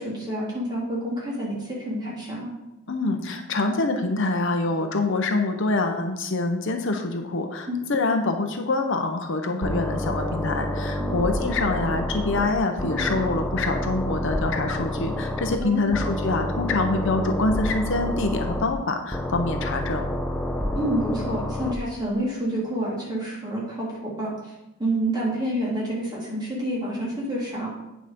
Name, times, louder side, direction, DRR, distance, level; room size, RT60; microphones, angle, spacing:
voice 1, 0.0-2.5 7.7-7.8 11.0-11.2 12.8-13.0 15.6-16.1 20.7-24.3 24.8-27.7, right 1 dB, 20° right, -6 dB, 3.2 m, -28 dB
voice 2, 2.9-20.0, left 3 dB, 65° left, 5 dB, 0.9 m, -25 dB
sound 1, 9.6-12.5 12.8-15.6 15.9-18.6 19.1-21.7, left 1 dB, 5° left, 0.7 m, -28 dB
9.0 x 5.0 x 5.3 m, 0.95 s
head